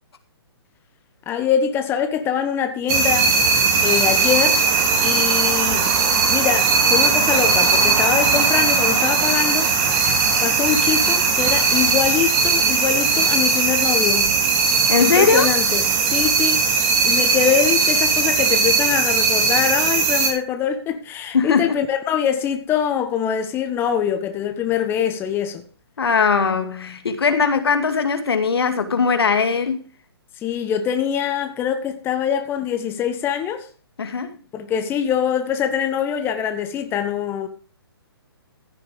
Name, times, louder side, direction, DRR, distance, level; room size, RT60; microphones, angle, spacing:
voice 1, 1.3-3.4 3.8-4.6 5.0-5.8 6.3-9.7 10.4-14.3 15.0-16.6 17.0-25.6 30.4-33.7 34.5-37.5, left 8 dB, 15° left, 1.2 m, -23 dB
sound 1, 2.9-20.3, right 4 dB, 30° right, 2.8 m, -18 dB
voice 2, 14.9-15.5 21.3-21.8 26.0-29.9 34.0-34.4, left 5 dB, 70° left, 2.3 m, -19 dB
15.0 x 6.8 x 5.1 m
hypercardioid pair, 140°, 14 cm